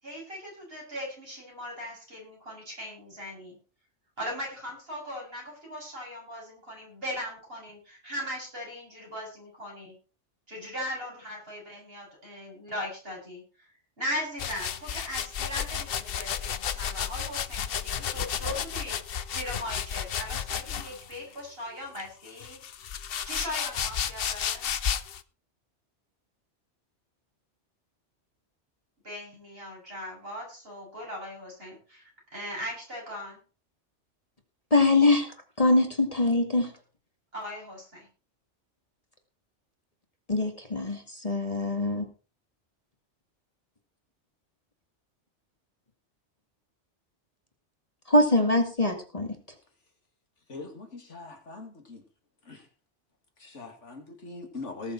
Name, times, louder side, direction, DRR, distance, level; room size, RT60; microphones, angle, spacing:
voice 1, 0.0-3.6 4.2-10.0 10.5-13.4 14.0-19.0 19.3-22.6 23.2-24.7 29.0-32.0 32.3-33.4 37.3-38.1, equal, 55° right, -2 dB, 7.7 m, -38 dB
sound 1, 14.4-21.2 22.0-25.2, left 8 dB, 55° left, 0.9 m, -32 dB
voice 2, 34.7-36.7 40.3-42.1 48.1-49.3, left 2 dB, 30° left, 4 dB, 2.1 m, -23 dB
voice 3, 50.5-52.0 52.5-52.6 53.4-54.9, left 3 dB, 90° left, 3 dB, 3.0 m, -41 dB
19.0 x 7.2 x 4.5 m, 0.35 s
omnidirectional pair, 1.2 m